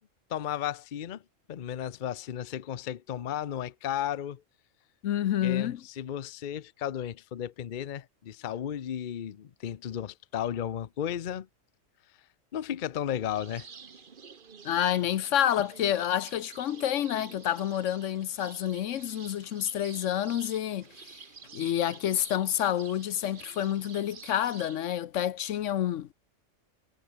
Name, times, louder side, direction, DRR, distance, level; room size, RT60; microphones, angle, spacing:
voice 1, 0.3-1.2 1.5-4.4 5.4-11.5 12.5-13.7, left 10 dB, 50° left, 0.7 m, -34 dB
voice 2, 5.0-5.8 14.6-21.2 21.5-26.1, left 11 dB, 75° left, 1.0 m, -29 dB
sound 1, 13.3-24.9, right 6 dB, 45° right, 1.2 m, -50 dB
omnidirectional pair, 1.3 m